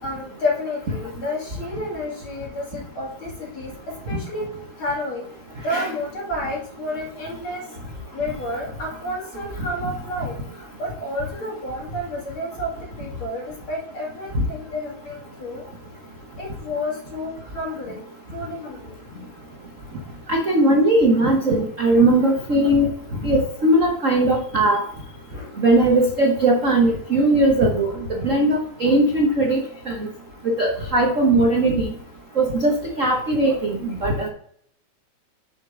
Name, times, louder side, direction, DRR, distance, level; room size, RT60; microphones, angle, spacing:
voice 1, 0.0-3.7 4.1-4.5 4.8-5.2 5.6-7.7 8.1-15.6 16.4-18.0 18.3-19.3 25.3-25.5, left 1 dB, 45° left, -3 dB, 3.4 m, -30 dB
voice 2, 20.3-22.9 23.2-24.8 25.6-27.9 28.2-29.6 29.9-30.0 30.6-31.9 32.4-34.3, right 1 dB, 85° right, -1 dB, 0.6 m, -19 dB
6.9 x 6.8 x 3.8 m, 0.64 s
omnidirectional pair, 3.4 m